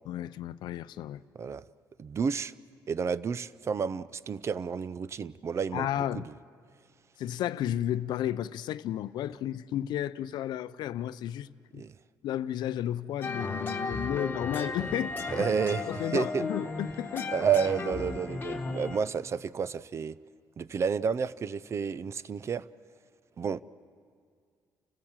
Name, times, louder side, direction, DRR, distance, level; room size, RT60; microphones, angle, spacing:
voice 1, 0.1-1.2 5.7-6.3 7.2-11.8 12.2-15.4 15.9-17.3, left 11 dB, 75° left, 0.5 m, -33 dB
voice 2, 2.0-2.5 2.9-6.3 11.8-11.9 15.3-16.4 17.3-20.2 20.6-22.7 23.4-23.6, right 6 dB, 40° right, 0.5 m, -30 dB
sound 1, 13.2-19.0, left 3 dB, 25° left, 1.4 m, -35 dB
30.0 x 15.0 x 7.4 m
cardioid pair, 115°, 7 cm